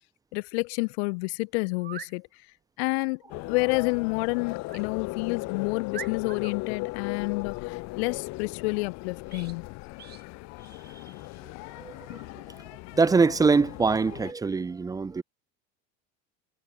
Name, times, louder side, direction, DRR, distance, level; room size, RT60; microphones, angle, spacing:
voice 1, 0.3-2.3 2.8-3.2 3.5-9.7, left 29 dB, 80° left, 0.8 m, -29 dB
sound 1, 0.8-0.9 1.7-2.2 4.7-4.9 5.4-5.5 5.9-6.6 9.3-9.6 10.0-10.2, right 10 dB, 30° right, 6.7 m, -42 dB
sound 2, 3.3-14.3, left 24 dB, 55° left, 5.5 m, -37 dB
voice 2, 11.8-12.4 12.9-15.2, right 4 dB, 10° right, 0.9 m, -24 dB
cardioid pair, 165°, 32 cm